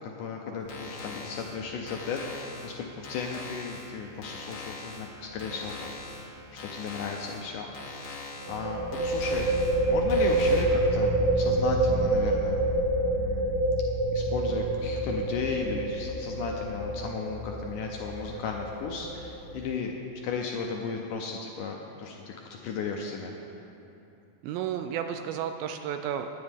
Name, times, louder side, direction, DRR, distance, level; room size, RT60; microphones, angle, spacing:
voice 1, 0.0-7.7 8.1-8.2 8.5-12.6 13.1-13.5 14.1-19.9 20.2-23.3, left 5 dB, 80° left, 1 dB, 1.9 m, -35 dB
sound 1, 0.6-10.6, left 3 dB, 50° left, 1.4 m, -42 dB
sound 2, 5.3-5.6 5.8-5.9 8.4-19.8, right 2 dB, 50° right, 4.7 m, -27 dB
voice 2, 24.4-26.3, right 9 dB, 80° right, 7 dB, 2.1 m, -32 dB
18.5 x 10.5 x 3.6 m, 2.9 s
omnidirectional pair, 4.4 m